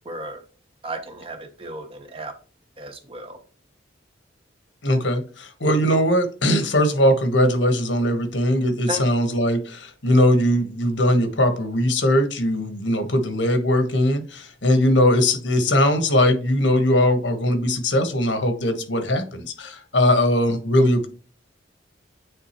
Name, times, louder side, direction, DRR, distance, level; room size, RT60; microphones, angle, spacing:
voice 1, 0.0-0.4 0.8-2.3 2.8-3.4 8.9-9.1, right 1 dB, 30° right, 6 dB, 1.0 m, -34 dB
voice 2, 4.8-21.1, left 1 dB, 90° left, 8 dB, 1.3 m, -20 dB
9.0 x 3.6 x 3.0 m, 0.37 s
head